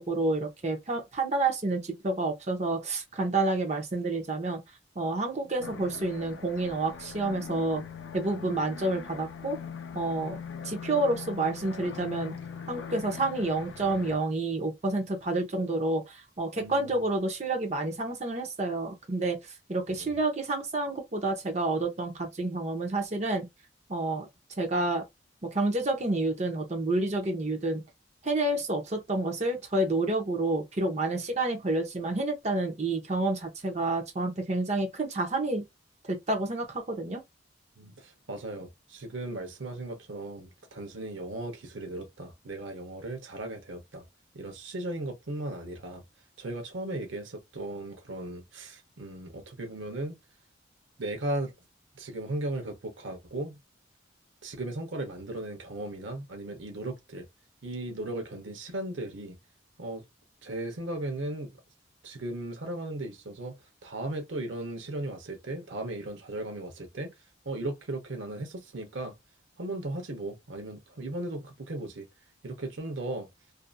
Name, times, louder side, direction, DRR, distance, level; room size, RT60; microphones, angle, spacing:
voice 1, 0.0-4.6 5.0-7.8 8.1-9.6 9.9-12.3 12.7-19.4 19.7-23.5 23.9-24.3 24.6-25.0 25.4-27.8 28.2-35.6 36.1-37.2, right 2 dB, 35° right, 0.7 m, -29 dB
sound 1, 5.6-14.2, left 6 dB, 75° left, 0.4 m, -41 dB
voice 2, 16.6-17.1 20.0-20.2 37.8-44.1 44.3-46.0 46.4-50.2 51.0-51.5 51.9-53.6 54.4-57.3 57.6-59.4 59.8-60.0 60.4-61.5 62.0-63.6 63.8-67.1 67.4-69.1 69.6-72.1 72.4-73.3, right 2 dB, 80° right, 0.8 m, -36 dB
2.7 x 2.5 x 2.2 m
head